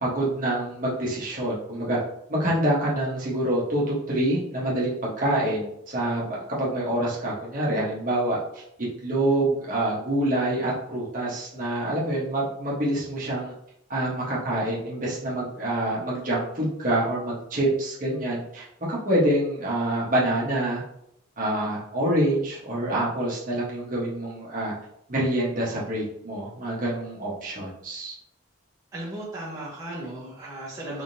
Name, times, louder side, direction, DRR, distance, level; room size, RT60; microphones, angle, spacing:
voice 1, 0.0-2.0 2.3-8.6 9.0-13.5 13.9-20.8 21.4-24.7 25.1-28.1, right 1 dB, 40° right, -6 dB, 1.0 m, -26 dB
voice 2, 28.9-31.0, right 1 dB, 15° right, -8 dB, 0.9 m, -36 dB
3.5 x 3.5 x 2.7 m, 0.75 s
head